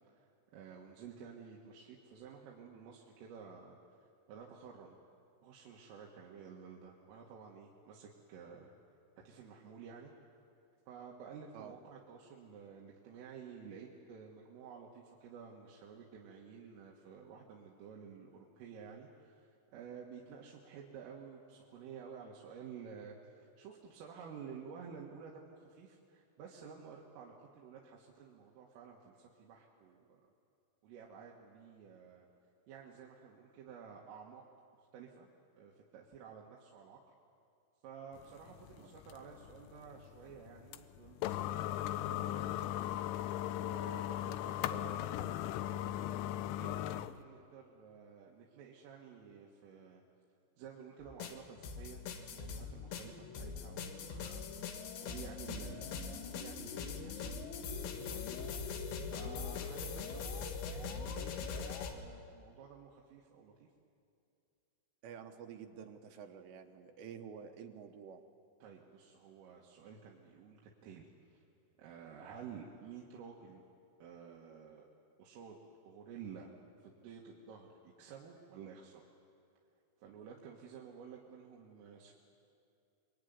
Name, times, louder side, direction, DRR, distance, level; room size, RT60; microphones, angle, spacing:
voice 1, 0.0-5.0 5.4-8.7 9.2-10.1 10.9-30.2 30.8-32.3 32.7-34.4 34.9-35.3 35.6-37.0 37.8-43.0 43.5-46.2 46.5-50.0 50.6-54.5 55.0-58.5 59.0-63.7 68.6-71.5 71.8-73.6 74.0-74.9 75.2-76.5 76.8-79.0 80.0-82.1, right 6 dB, 90° right, -2 dB, 4.4 m, -52 dB
sound 1, 38.2-47.2, left 12 dB, 85° left, 3.3 m, -38 dB
sound 2, 51.0-61.9, left 5 dB, 70° left, 3.8 m, -42 dB
voice 2, 65.0-68.2, right 7 dB, 70° right, 5 dB, 3.1 m, -50 dB
27.0 x 22.5 x 9.6 m, 2.5 s
omnidirectional pair, 5.6 m